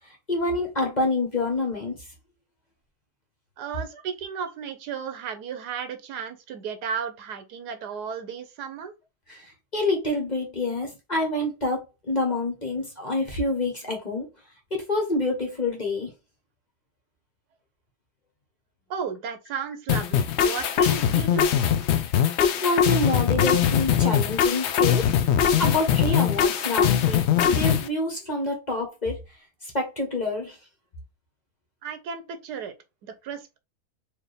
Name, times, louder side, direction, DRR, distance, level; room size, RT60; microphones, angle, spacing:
voice 1, 0.1-2.0 9.3-14.3 14.7-16.1 22.4-25.1 25.6-29.2 29.6-30.6, left 2 dB, 30° left, 1.2 m, -27 dB
voice 2, 3.6-8.9 18.9-21.5 31.8-32.7 33.0-33.6, right 6 dB, 80° right, 1.4 m, -34 dB
sound 1, 19.9-27.9, left 8 dB, 75° left, 0.6 m, -21 dB
4.5 x 2.7 x 3.3 m
omnidirectional pair, 1.7 m